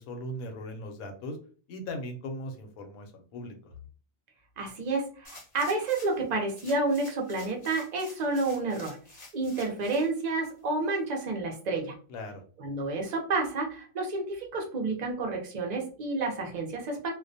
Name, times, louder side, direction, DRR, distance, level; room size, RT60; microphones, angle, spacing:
voice 1, 0.0-1.4 1.7-3.7 12.1-12.4, left 1 dB, 85° left, 5 dB, 1.0 m, -39 dB
voice 2, 4.6-9.0 9.3-11.9 12.6-17.1, right 3 dB, 55° right, 1 dB, 0.5 m, -30 dB
sound 1, 5.2-6.2 6.5-10.1 10.6-10.7, left 2 dB, 35° left, 0.7 m, -50 dB
2.4 x 2.1 x 2.6 m, 0.41 s
omnidirectional pair, 1.4 m